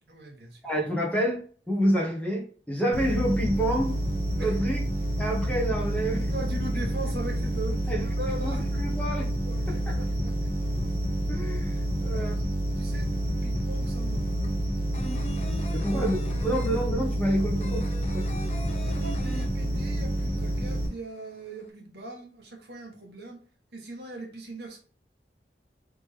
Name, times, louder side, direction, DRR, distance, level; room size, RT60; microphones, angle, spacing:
voice 1, 0.1-0.6 4.4-4.5 6.2-8.8 9.5-10.3 12.1-12.3 12.8-14.7 15.6-16.1 16.3-16.6 18.7-23.4 23.7-24.8, right 2 dB, 70° right, 1.4 m, -40 dB
voice 2, 0.6-4.0 4.4-4.8 5.2-6.3 7.9-8.0 8.4-9.3 9.7-10.0 11.3-11.8 12.0-12.5 15.7-17.9 18.1-18.4, equal, 5° left, 1.3 m, -28 dB
sound 1, 2.9-20.9, right 1 dB, 30° right, 1.5 m, -28 dB
sound 2, 13.2-13.3 13.5-20.1 20.4-20.5 20.8-21.6, left 1 dB, 40° left, 0.6 m, -41 dB
4.1 x 3.2 x 3.4 m
head